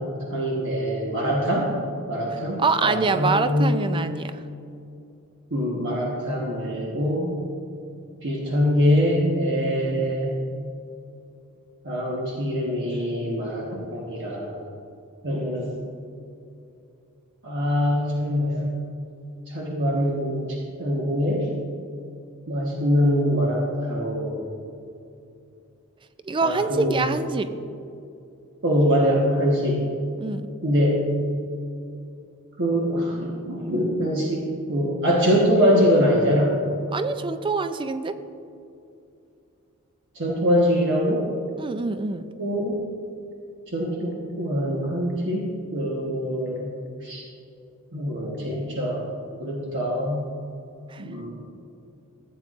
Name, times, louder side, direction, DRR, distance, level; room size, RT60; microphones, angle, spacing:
voice 1, 0.0-1.7 2.1-3.8 5.5-7.4 8.2-10.4 11.8-14.7 15.2-15.7 17.4-18.7 19.5-21.5 22.5-24.4 26.4-27.0 28.6-29.8 30.6-31.1 32.6-36.6 40.1-41.3 42.4-42.8 43.7-46.7 47.0-47.2 47.9-49.1 49.4-50.2 51.0-51.3, equal, 55° right, -3 dB, 1.3 m, -23 dB
voice 2, 2.6-4.3 26.3-27.5 30.2-30.5 36.9-38.2 41.6-42.3 50.9-51.0, right 4 dB, 20° right, 10 dB, 0.4 m, -25 dB
15.5 x 8.5 x 2.5 m, 2.6 s
head